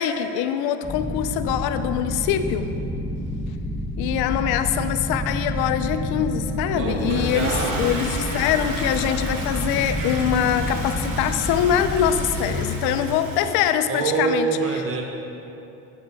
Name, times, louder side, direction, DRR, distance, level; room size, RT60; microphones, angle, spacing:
voice 1, 0.0-2.7 4.0-14.5 14.7-14.8, left 9 dB, 65° left, 10 dB, 0.8 m, -23 dB
sound 1, 0.8-12.4, left 1 dB, 15° left, 1.7 m, -29 dB
voice 2, 6.8-7.8 13.9-15.0, right 5 dB, 35° right, 2 dB, 1.2 m, -25 dB
Toilet flush, 6.9-13.8, right 1 dB, 85° right, 2.1 m, -33 dB
10.5 x 8.1 x 6.3 m, 2.9 s
supercardioid pair, 90°, 40 cm